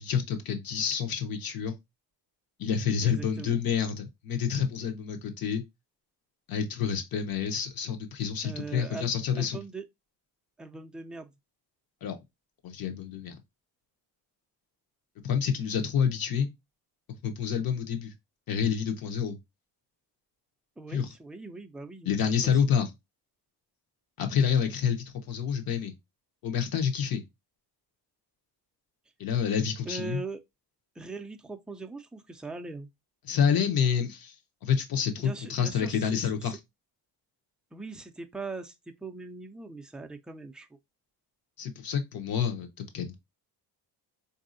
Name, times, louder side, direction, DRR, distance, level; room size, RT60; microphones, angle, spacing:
voice 1, 0.0-1.7 2.6-5.6 6.5-9.6 12.0-12.2 12.6-13.4 15.2-16.5 17.2-18.1 18.5-19.4 20.9-21.1 22.1-22.9 24.2-25.9 26.4-27.2 29.2-30.2 33.2-34.3 34.6-36.6 41.6-43.1, left 7 dB, 60° left, 0.9 m, -28 dB
voice 2, 3.0-3.6 8.4-9.9 10.6-11.3 20.8-22.6 29.9-30.4 31.0-32.9 35.2-36.6 37.7-40.8, right 3 dB, ahead, 0.3 m, -41 dB
4.0 x 2.7 x 2.6 m
cardioid pair, 120°, 40 cm